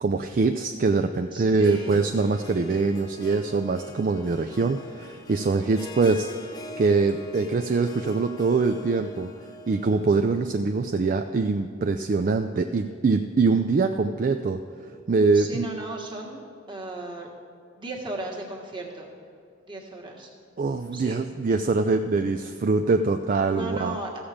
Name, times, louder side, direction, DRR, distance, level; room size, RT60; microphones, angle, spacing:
voice 1, 0.0-6.3 6.8-9.3 9.7-15.7 20.6-24.0, right 4 dB, 40° right, 6 dB, 0.4 m, -23 dB
voice 2, 1.3-2.1 15.3-17.3 17.8-19.1 19.7-20.3 20.9-21.2 23.5-24.2, right 2 dB, 25° right, -1 dB, 1.5 m, -36 dB
Harp, 1.5-10.5, left 1 dB, 20° left, 0.7 m, -44 dB
15.0 x 7.1 x 5.0 m, 2.3 s
head